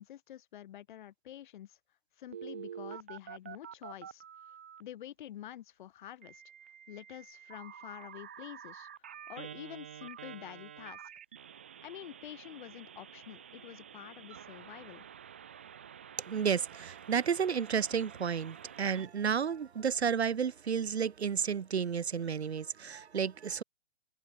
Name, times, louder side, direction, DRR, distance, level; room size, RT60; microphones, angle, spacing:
voice 1, 0.0-1.8 2.2-4.2 4.8-6.4 6.9-8.9 9.3-11.0 11.8-15.0, left 12 dB, 50° left, 5.9 m, -48 dB
Telephone, 2.3-4.8 6.2-19.1, right 8 dB, 15° right, 0.3 m, -49 dB
voice 2, 16.3-23.6, right 7 dB, 90° right, 2.2 m, -32 dB
hypercardioid pair, 155°, 32 cm